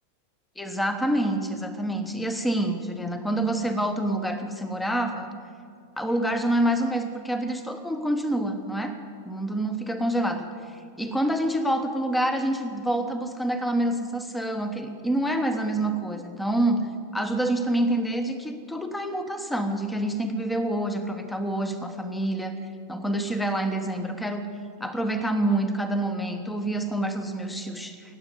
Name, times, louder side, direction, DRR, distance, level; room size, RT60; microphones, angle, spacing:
voice 1, 0.6-5.3 6.0-9.0 9.2-22.6 22.9-24.5 24.8-28.2, right 1 dB, 5° left, 8 dB, 1.2 m, -27 dB
19.0 x 8.2 x 7.9 m, 2.3 s
figure-of-eight pair, 90°, 0 cm